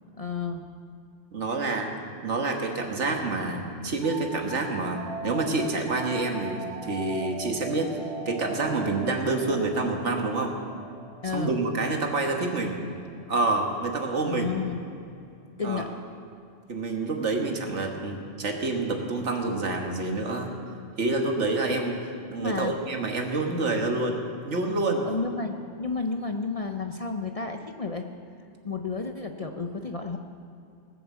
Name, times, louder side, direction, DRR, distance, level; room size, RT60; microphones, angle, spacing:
voice 1, 0.2-0.6 11.2-11.5 14.2-14.8 15.6-15.9 22.4-22.7 25.0-28.1 28.6-30.2, left 4 dB, 40° left, 4 dB, 0.6 m, -31 dB
voice 2, 1.3-1.9 2.2-8.0 8.2-10.6 11.3-12.9 13.3-14.5 15.6-15.8 16.7-20.5 21.0-22.0 22.3-25.1, right 3 dB, 75° right, 3 dB, 1.7 m, -27 dB
sound 1, 4.0-13.4, right 3 dB, ahead, 1.9 m, -41 dB
19.0 x 7.0 x 7.2 m, 2.5 s
omnidirectional pair, 1.2 m